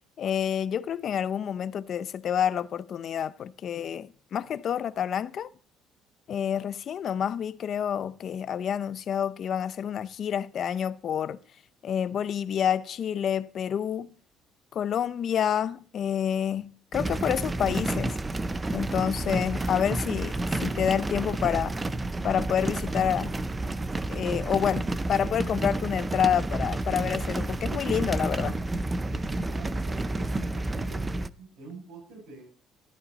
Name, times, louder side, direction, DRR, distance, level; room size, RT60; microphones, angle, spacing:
voice 1, 0.2-5.5 6.3-11.4 11.8-14.1 14.7-18.2 18.7-21.8 22.2-23.3 24.1-28.6, left 9 dB, 40° left, 0.6 m, -28 dB
sound 1, 16.9-31.3, right 2 dB, 15° right, 0.5 m, -30 dB
voice 2, 29.1-32.4, right 3 dB, 90° right, 7.1 m, -45 dB
14.0 x 12.5 x 4.1 m
cardioid pair, 165°, 0 cm